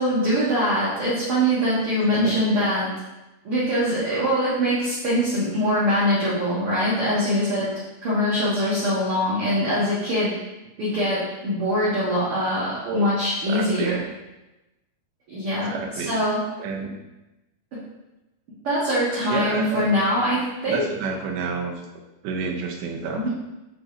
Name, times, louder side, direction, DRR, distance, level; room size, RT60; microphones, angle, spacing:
voice 1, 0.0-2.9 3.4-7.7 8.0-10.3 10.8-14.0 15.3-15.7 16.1-16.4 17.7-17.8 18.6-20.8 23.2-23.3, equal, 55° right, -9 dB, 1.6 m, -23 dB
voice 2, 13.5-14.0 15.7-16.2 16.6-17.0 19.3-20.1 20.7-21.8 22.2-23.3, right 4 dB, 80° right, 2 dB, 2.6 m, -29 dB
8.7 x 3.0 x 3.8 m, 1.0 s
omnidirectional pair, 4.5 m